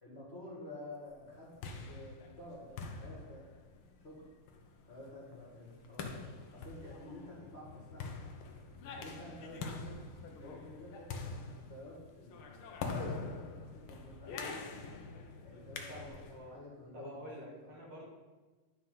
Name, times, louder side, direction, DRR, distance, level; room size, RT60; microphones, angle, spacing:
voice 1, 0.0-3.7 4.0-4.3 4.9-8.3 8.8-10.0 10.4-14.8 15.4-16.1 16.4-17.7, left 1 dB, 30° left, -4 dB, 2.0 m, -51 dB
sound 1, 1.3-16.4, left 4 dB, 75° left, 1.7 m, -45 dB
voice 2, 15.9-16.6 16.9-18.1, equal, 55° right, -3 dB, 2.7 m, -48 dB
10.5 x 4.3 x 5.5 m, 1.2 s
omnidirectional pair, 2.4 m